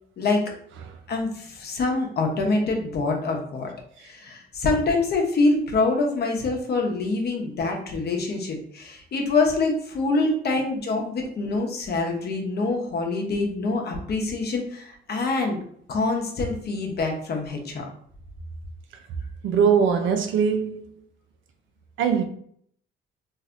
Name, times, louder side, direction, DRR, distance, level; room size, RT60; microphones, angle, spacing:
voice 1, 0.2-0.5 1.1-3.7 4.0-15.6 15.9-17.8, left 3 dB, 55° left, 0.9 m, -25 dB
voice 2, 19.4-20.9 22.0-22.2, right 7 dB, 75° right, 0.5 m, -21 dB
3.2 x 2.6 x 2.5 m
cardioid pair, 90°, 20 cm